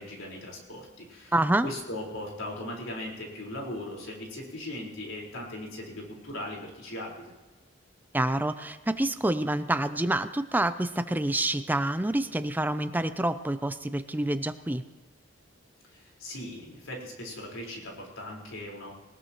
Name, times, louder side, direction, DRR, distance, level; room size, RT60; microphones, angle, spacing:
voice 1, 0.0-1.3 1.6-7.3 15.9-18.9, left 1 dB, 90° left, -2 dB, 4.5 m, -39 dB
voice 2, 1.3-1.7 8.1-14.8, right 1 dB, 10° right, 11 dB, 0.5 m, -27 dB
20.5 x 19.5 x 3.0 m, 1.3 s
head